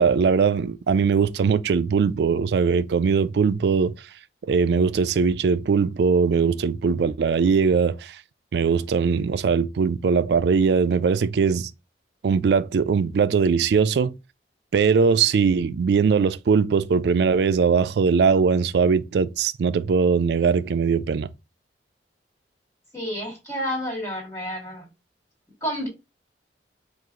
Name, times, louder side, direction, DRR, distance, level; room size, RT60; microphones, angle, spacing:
voice 1, 0.0-3.9 4.5-8.2 8.5-11.7 12.2-14.2 14.7-21.3, right 5 dB, 70° right, 0.3 m, -20 dB
voice 2, 22.9-24.9 25.6-25.9, equal, 15° left, 1.9 m, -30 dB
4.6 x 2.4 x 3.6 m
head